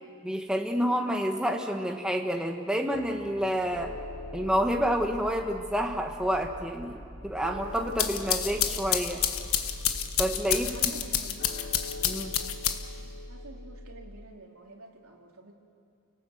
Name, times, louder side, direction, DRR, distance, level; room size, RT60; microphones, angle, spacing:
voice 1, 0.2-3.9 4.3-9.2 10.2-10.7 12.0-12.3, equal, 5° right, 2 dB, 1.4 m, -29 dB
sound 1, 2.9-10.9, equal, 35° left, 2.4 m, -49 dB
sound 2, 3.7-14.3, left 1 dB, 50° left, 3.2 m, -43 dB
sound 3, 7.8-13.1, left 9 dB, 80° left, 1.3 m, -29 dB
voice 2, 10.5-11.5 12.2-12.4 13.3-15.5, right 2 dB, 80° right, 0 dB, 3.0 m, -48 dB
29.5 x 18.5 x 7.9 m, 2.4 s
head